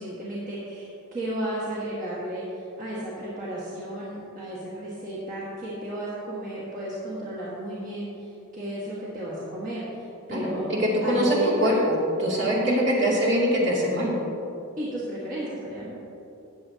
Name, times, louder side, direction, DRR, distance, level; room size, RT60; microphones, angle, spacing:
voice 1, 0.0-8.3 8.5-10.6 11.0-11.8 12.6-13.1 14.8-15.8, right 1 dB, 40° right, -8 dB, 1.7 m, -33 dB
voice 2, 10.3-14.1, equal, 55° right, -5 dB, 2.6 m, -23 dB
14.5 x 9.3 x 2.9 m, 2.9 s
head